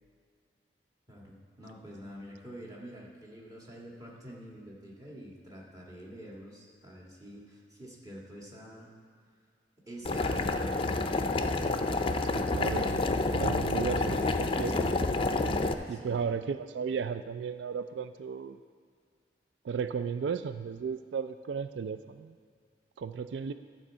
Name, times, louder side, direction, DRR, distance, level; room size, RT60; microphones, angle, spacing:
voice 1, 1.1-8.9 9.9-11.4 15.9-16.3, equal, 20° right, -4 dB, 1.9 m, -47 dB
Boiling, 10.0-15.7, left 2 dB, 30° left, 0.5 m, -29 dB
voice 2, 12.3-15.0 15.9-18.6 19.6-22.4 23.0-23.5, right 6 dB, 90° right, 11 dB, 0.3 m, -35 dB
12.5 x 4.5 x 7.3 m, 2.1 s
head